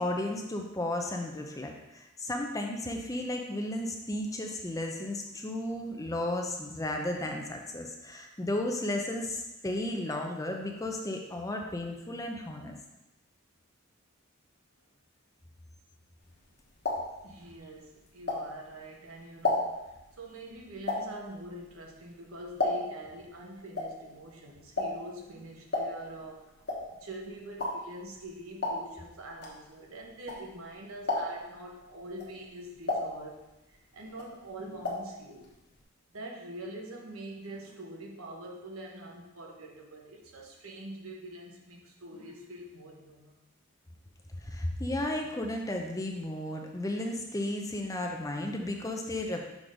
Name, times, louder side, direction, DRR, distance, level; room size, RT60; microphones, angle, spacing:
voice 1, 0.0-12.7 44.4-49.4, left 1 dB, 15° left, 2 dB, 0.6 m, -34 dB
sound 1, 16.3-18.8 19.2-23.1 23.4-30.7 31.0-31.6 32.1-33.8 34.1-35.2 35.4-35.5 35.8-35.9, left 2 dB, 50° left, 1.2 m, -34 dB
voice 2, 17.2-26.7 26.9-33.4 33.7-35.5 36.1-43.4, right 1 dB, 85° right, 0 dB, 1.2 m, -45 dB
6.2 x 3.8 x 5.0 m, 0.98 s
head